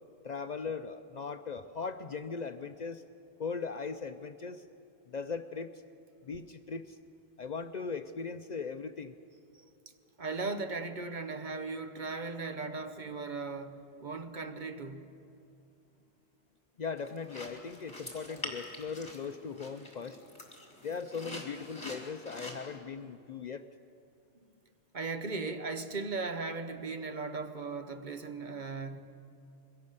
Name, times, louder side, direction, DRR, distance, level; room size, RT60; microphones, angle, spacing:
voice 1, 0.2-3.0 3.4-4.7 5.1-5.7 6.2-7.0 7.4-9.1 16.8-20.2 20.8-23.6, left 5 dB, 50° left, 0.6 m, -39 dB
voice 2, 10.2-15.2 24.9-29.0, right 3 dB, 50° right, 1.1 m, -37 dB
sound 1, 17.0-22.8, left 2 dB, 25° left, 2.8 m, -46 dB
22.5 x 17.0 x 6.7 m
omnidirectional pair, 1.1 m